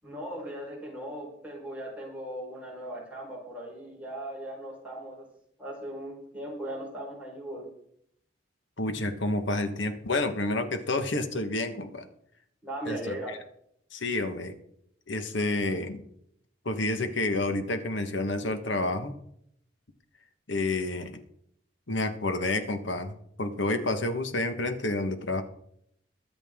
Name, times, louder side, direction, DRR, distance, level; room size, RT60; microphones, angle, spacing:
voice 1, 0.0-5.2 5.6-7.6 12.6-13.3, right 1 dB, 5° right, -4 dB, 4.7 m, -38 dB
voice 2, 8.8-12.1 12.8-13.4 13.9-14.5 15.1-16.0 16.6-19.1 20.5-21.2 21.9-25.4, left 2 dB, 75° left, 7 dB, 1.4 m, -29 dB
22.5 x 7.8 x 3.7 m, 0.71 s
head